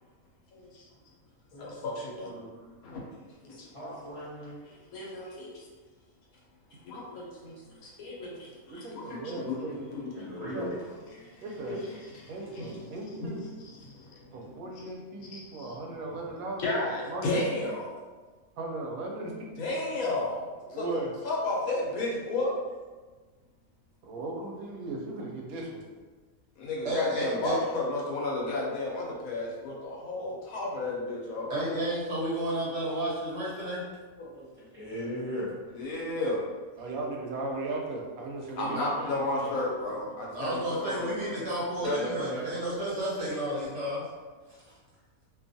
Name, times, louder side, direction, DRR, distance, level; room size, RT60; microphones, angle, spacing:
voice 1, 0.5-0.9 1.6-2.3 2.8-3.0 3.4-3.7 4.6-5.6 6.8-10.1 10.4-10.7 11.1-12.9 13.2-13.3 13.6-14.5 14.8-14.9 15.3-15.8 16.6-18.0 19.6-20.9 21.2-22.6 26.6-31.6 35.7-36.4 38.6-41.5, left 2 dB, 85° left, -3 dB, 1.1 m, -33 dB
voice 2, 3.7-4.6 10.1-10.8 34.2-35.5 41.8-42.5, equal, 45° left, -11 dB, 0.4 m, -36 dB
voice 3, 8.7-9.8 10.4-10.7 11.4-11.8 12.3-13.4 14.3-16.7 17.1-17.6 18.6-19.5 19.9-20.0 20.7-21.1 24.0-25.8 36.8-39.6 40.0-40.2, right 2 dB, 85° right, 0 dB, 1.0 m, -37 dB
voice 4, 26.8-27.6 31.5-33.8 40.3-44.0, right 1 dB, 60° right, -7 dB, 1.2 m, -31 dB
2.6 x 2.3 x 2.6 m, 1.4 s
omnidirectional pair, 1.5 m